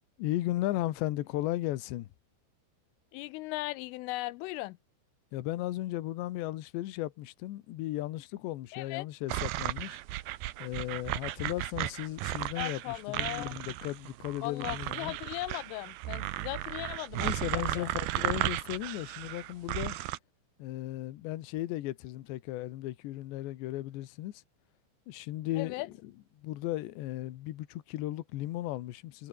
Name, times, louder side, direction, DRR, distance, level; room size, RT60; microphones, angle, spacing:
voice 1, 0.2-2.1 5.3-10.0 10.6-15.1 17.2-20.0 20.6-24.3 25.1-25.7 26.0-26.1 26.4-29.3, left 15 dB, 70° left, 3.3 m, -35 dB
voice 2, 3.1-4.8 8.7-9.1 12.6-13.6 14.4-17.9 25.6-25.9, left 20 dB, 85° left, 3.3 m, -38 dB
sound 1, 9.3-20.2, right 16 dB, 80° right, 2.3 m, -35 dB
omnidirectional pair, 5.7 m